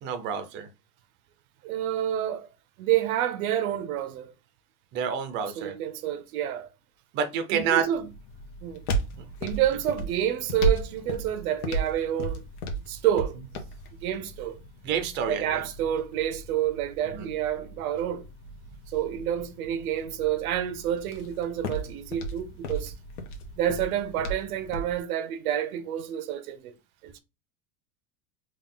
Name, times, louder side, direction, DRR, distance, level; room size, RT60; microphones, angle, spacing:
voice 1, 0.0-0.7 4.9-5.7 7.1-7.8 14.8-15.6 17.1-17.3, right 7 dB, 25° right, 0.5 m, -28 dB
voice 2, 1.6-2.5 2.8-4.3 5.6-6.7 7.5-8.1 8.6-8.8 9.4-12.5 12.9-13.3 14.0-14.6 15.3-18.2 18.9-22.9 23.6-26.7 27.0-27.2, right 11 dB, 75° right, 0.8 m, -28 dB
sound 1, 7.9-25.0, right 2 dB, 90° left, 1.1 m, -35 dB
3.8 x 2.4 x 3.7 m
supercardioid pair, 155°, 43 cm